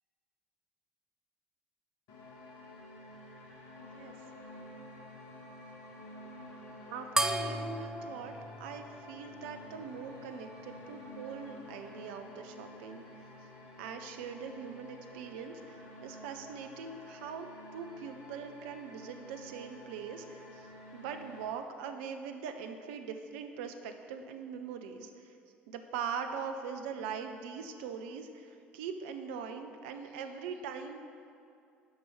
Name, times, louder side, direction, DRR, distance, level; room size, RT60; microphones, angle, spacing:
sound 1, 2.1-21.5, left 1 dB, 60° left, 1.5 m, -50 dB
voice 1, 3.8-4.1 6.9-13.0 13.8-17.5 17.7-20.7 20.9-25.3 25.7-31.0, right 6 dB, 65° right, 6 dB, 0.6 m, -42 dB
sound 2, 7.2-10.0, right 1 dB, 10° right, 0.4 m, -35 dB
9.6 x 5.2 x 5.9 m, 2.4 s
figure-of-eight pair, 60°, 6 cm